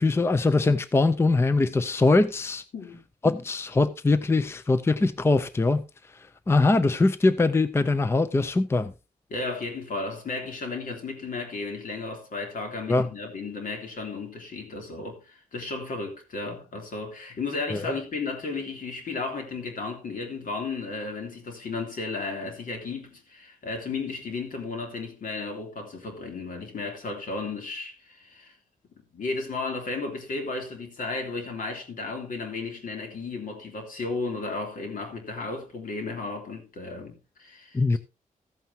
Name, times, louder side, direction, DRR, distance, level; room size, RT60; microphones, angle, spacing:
voice 1, 0.0-2.6 3.2-5.8 6.5-8.9 12.9-13.1 17.7-17.9 37.7-38.0, left 3 dB, 15° left, 0.5 m, -22 dB
voice 2, 9.3-28.6 29.1-38.0, left 3 dB, 70° left, 3.2 m, -34 dB
15.0 x 9.3 x 2.8 m
wide cardioid pair, 160°, 15 cm